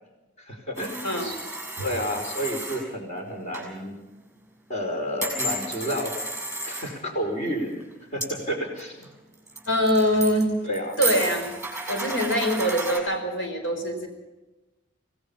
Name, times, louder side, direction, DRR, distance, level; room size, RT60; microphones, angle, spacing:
voice 1, 0.4-1.4 1.8-4.0 4.7-6.1 6.6-7.7 8.1-9.1 10.6-11.0, equal, 40° left, 2 dB, 4.8 m, -30 dB
sound 1, 0.7-2.8 3.2-3.3 3.5-3.7 5.2-6.9 7.6-7.9 8.2-8.3 8.8-9.0 9.5-10.4 10.7-13.0, right 2 dB, 10° right, 6.6 m, -32 dB
voice 2, 9.7-10.5 11.0-11.5 11.9-14.1, equal, 85° left, 4 dB, 4.9 m, -24 dB
26.5 x 18.0 x 5.5 m, 1.1 s
head